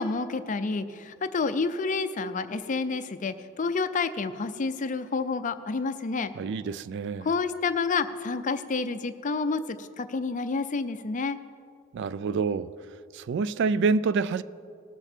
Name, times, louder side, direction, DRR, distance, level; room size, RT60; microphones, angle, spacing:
voice 1, 0.0-6.3 7.2-11.4, left 4 dB, 40° left, 0.5 m, -29 dB
voice 2, 6.4-7.3 11.9-12.7 13.1-14.4, right 4 dB, 60° right, 0.3 m, -27 dB
19.0 x 7.0 x 4.4 m
head